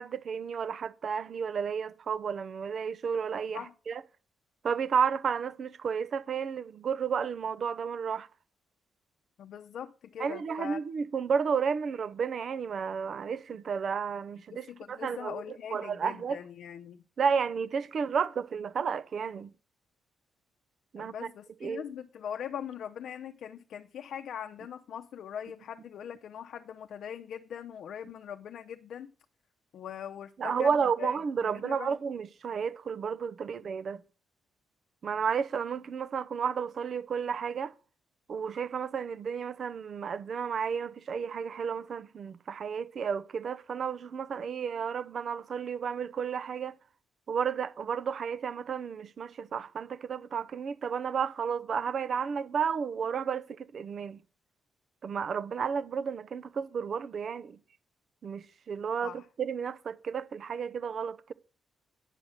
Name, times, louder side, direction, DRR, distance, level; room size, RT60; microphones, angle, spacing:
voice 1, 0.0-4.0 4.6-8.3 10.2-15.3 15.7-16.4 17.2-19.5 20.9-21.3 21.6-21.8 30.4-34.0 35.0-37.7 38.3-46.8 47.3-54.2 55.0-57.6 58.2-61.3, right 6 dB, 45° right, 0.7 m, -32 dB
voice 2, 9.4-10.8 14.5-17.0 21.0-29.1 29.7-32.0 59.0-59.3, left 8 dB, 65° left, 0.7 m, -41 dB
9.9 x 7.5 x 6.5 m
cardioid pair, 140°, 0 cm